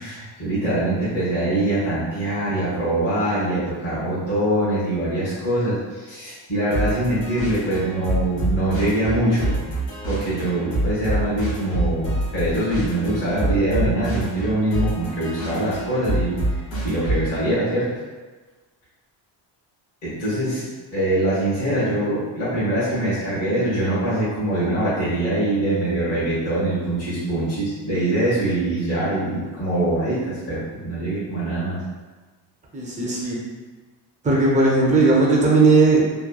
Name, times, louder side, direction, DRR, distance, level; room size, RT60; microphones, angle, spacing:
voice 1, 0.0-9.6 10.1-16.4 16.8-17.9 20.0-31.8, right 1 dB, 35° left, -10 dB, 0.9 m, -23 dB
sound 1, 6.7-17.4, right 1 dB, 75° left, 1.1 m, -27 dB
voice 2, 32.7-33.4 34.2-36.0, right 3 dB, 20° right, -4 dB, 0.4 m, -17 dB
2.9 x 2.1 x 2.2 m, 1.3 s
cardioid pair, 155°, 43 cm